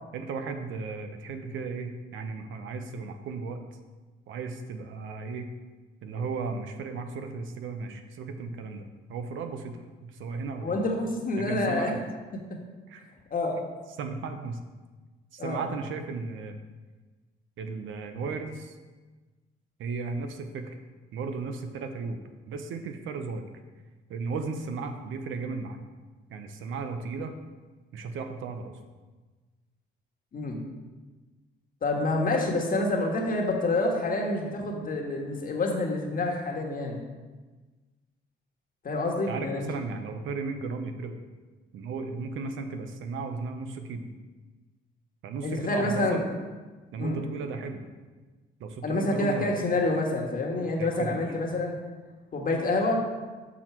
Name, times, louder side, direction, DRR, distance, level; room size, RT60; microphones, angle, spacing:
voice 1, 0.1-3.6 4.3-5.5 6.0-10.8 11.4-12.0 12.9-13.1 14.0-14.6 15.3-16.5 17.6-18.7 19.8-20.7 21.1-22.2 22.5-23.4 24.1-25.8 26.3-27.3 27.9-28.8 39.3-41.2 41.7-44.1 45.2-46.2 46.9-47.8 48.6-49.6 50.8-51.2, right 4 dB, 80° right, 7 dB, 0.8 m, -35 dB
voice 2, 10.6-11.9 13.3-13.6 15.4-15.6 30.3-30.6 31.8-37.0 38.8-39.7 45.4-46.2 47.0-47.2 48.8-51.8 52.3-53.0, left 2 dB, 45° left, 1 dB, 1.5 m, -27 dB
6.2 x 6.1 x 4.5 m, 1.3 s
cardioid pair, 90°, 20 cm